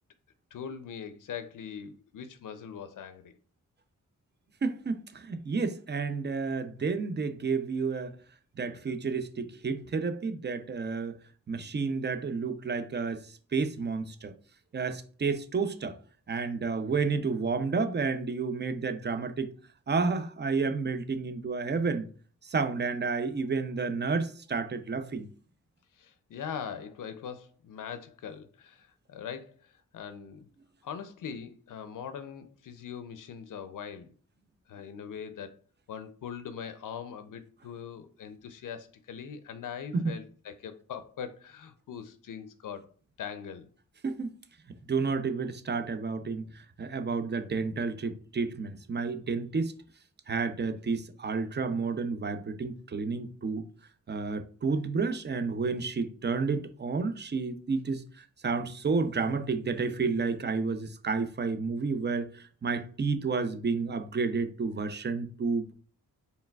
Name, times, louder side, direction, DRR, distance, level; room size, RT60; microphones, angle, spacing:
voice 1, 0.5-3.4 25.9-30.5 30.8-34.1 34.7-35.5 35.9-42.9 43.2-43.7, left 7 dB, 80° left, 0.5 m, -41 dB
voice 2, 4.6-8.1 8.6-11.2 11.5-14.3 14.7-16.0 16.3-19.5 19.9-22.1 22.4-25.3 39.9-40.1 44.0-44.3 44.9-49.7 50.3-53.6 54.1-65.7, right 4 dB, 35° right, 0.5 m, -31 dB
4.5 x 3.3 x 2.2 m
wide cardioid pair, 85°, 31 cm